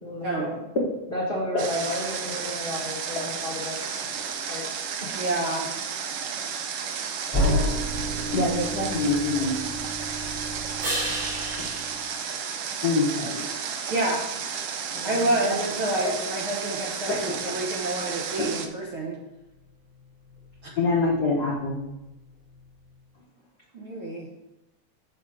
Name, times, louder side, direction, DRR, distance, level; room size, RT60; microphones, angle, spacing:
voice 1, 0.0-0.6 1.1-3.8 4.5-4.6 5.0-5.2 14.9-15.5, left 1 dB, 30° left, -5 dB, 1.1 m, -33 dB
Water, 1.6-18.7, right 6 dB, 90° right, 1.3 m, -33 dB
voice 2, 5.1-5.7 13.9-14.2 15.0-19.2 23.7-24.3, right 1 dB, 55° right, -2 dB, 1.5 m, -28 dB
sound 1, 7.3-12.0, equal, 5° left, 2.4 m, -30 dB
voice 3, 8.3-9.7 11.6-11.7 12.8-13.4 17.3-17.4 20.8-21.8, left 3 dB, 80° left, -3 dB, 0.9 m, -25 dB
sound 2, 10.8-13.4 19.1-23.1, right 1 dB, 40° right, 1.0 m, -38 dB
7.3 x 5.7 x 4.8 m, 0.94 s
omnidirectional pair, 3.6 m